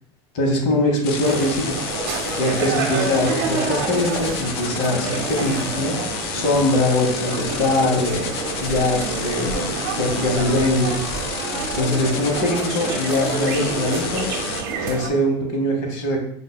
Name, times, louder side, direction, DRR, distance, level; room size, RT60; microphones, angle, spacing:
voice 1, 0.3-1.8 2.4-6.0 6.3-8.3 8.6-11.0 11.7-14.3 14.8-16.2, left 1 dB, 55° left, 1 dB, 1.0 m, -22 dB
sound 1, 1.0-14.6, left 6 dB, 80° left, 0.5 m, -31 dB
sound 2, 1.2-15.1, right 4 dB, 70° right, 0.7 m, -28 dB
5.0 x 2.2 x 2.2 m, 0.68 s
supercardioid pair, 140°, 13 cm